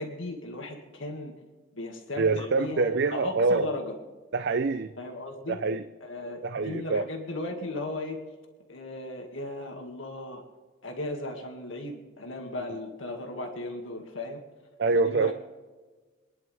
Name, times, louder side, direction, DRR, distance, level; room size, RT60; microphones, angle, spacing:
voice 1, 0.0-1.3 1.7-3.9 5.0-5.6 6.0-8.2 8.7-10.4 10.8-14.4 14.9-15.3, left 2 dB, 70° left, 2 dB, 2.2 m, -36 dB
voice 2, 2.2-3.7 4.3-4.9 5.5-5.8 6.4-7.1 14.8-15.3, right 3 dB, 60° right, 10 dB, 0.6 m, -25 dB
26.0 x 11.0 x 3.5 m, 1.3 s
head